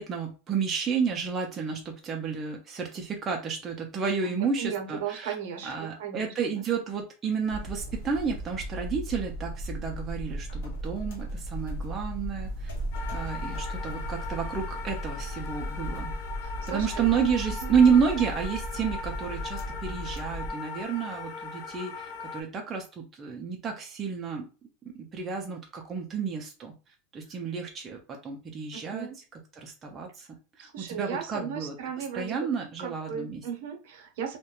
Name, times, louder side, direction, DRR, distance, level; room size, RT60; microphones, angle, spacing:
voice 1, 0.0-5.3 5.6-12.7 13.1-16.1 16.7-24.5 24.9-26.7 27.1-29.1 29.5-30.3 30.6-31.8 32.1-33.4, right 6 dB, 15° right, 0 dB, 0.3 m, -30 dB
voice 2, 4.2-6.6 16.4-17.1 17.6-17.7 28.7-29.2 30.6-32.5 32.8-34.4, right 8 dB, 60° right, 4 dB, 0.6 m, -36 dB
sound 1, 7.5-20.5, equal, 75° left, 0.8 m, -36 dB
sound 2, 12.9-22.4, left 5 dB, 50° left, 0.5 m, -39 dB
2.3 x 2.1 x 2.8 m, 0.34 s
supercardioid pair, 175°, 0 cm